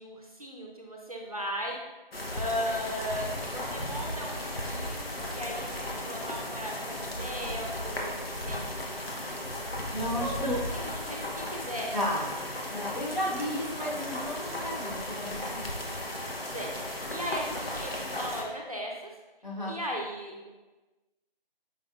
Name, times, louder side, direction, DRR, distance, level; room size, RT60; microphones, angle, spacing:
voice 1, 0.0-1.8 2.3-5.1 5.3-8.1 8.5-8.7 10.1-11.9 16.5-18.9 19.7-20.5, equal, 40° right, -1 dB, 0.5 m, -36 dB
sound 1, 2.1-18.4, left 1 dB, 80° left, 1.0 m, -35 dB
voice 2, 9.9-10.5 11.9-12.3 12.7-15.7 19.4-19.8, equal, 50° left, -5 dB, 1.4 m, -33 dB
5.3 x 4.1 x 2.4 m, 1.1 s
figure-of-eight pair, 160°, 29 cm